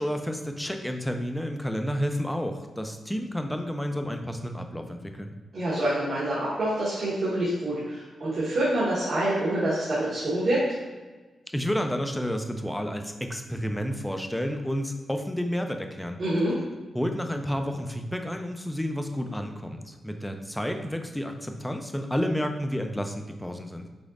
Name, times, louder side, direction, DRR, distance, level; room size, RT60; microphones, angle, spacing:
voice 1, 0.0-5.3 11.5-16.2 16.9-23.9, equal, 5° left, 5 dB, 0.4 m, -30 dB
voice 2, 5.5-10.8 16.2-16.5, right 1 dB, 55° right, -10 dB, 1.2 m, -26 dB
5.2 x 3.6 x 2.5 m, 1.3 s
cardioid pair, 105°, 0 cm